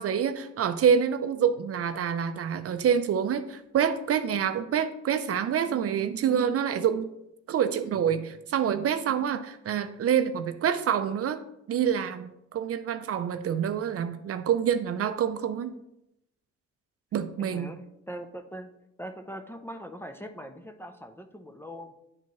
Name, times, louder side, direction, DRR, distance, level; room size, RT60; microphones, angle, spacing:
voice 1, 0.0-7.1 7.5-11.4 11.7-15.8 17.1-17.7, right 8 dB, 50° right, 10 dB, 0.5 m, -27 dB
voice 2, 17.4-18.7 19.0-21.9, equal, 10° left, 6 dB, 0.5 m, -41 dB
9.7 x 4.4 x 3.1 m, 0.83 s
cardioid pair, 90°, 30 cm